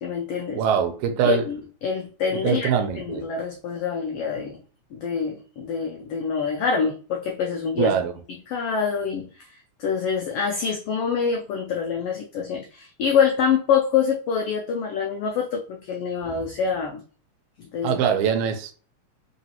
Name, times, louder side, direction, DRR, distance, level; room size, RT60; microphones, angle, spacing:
voice 1, 0.0-0.6 1.2-2.7 3.0-4.6 4.9-7.9 8.5-17.0 17.6-18.0, left 6 dB, 90° left, 1.3 m, -26 dB
voice 2, 0.5-1.4 2.3-3.3 7.8-8.1 17.8-18.7, right 7 dB, 85° right, 2.0 m, -23 dB
3.9 x 3.8 x 2.8 m
omnidirectional pair, 3.3 m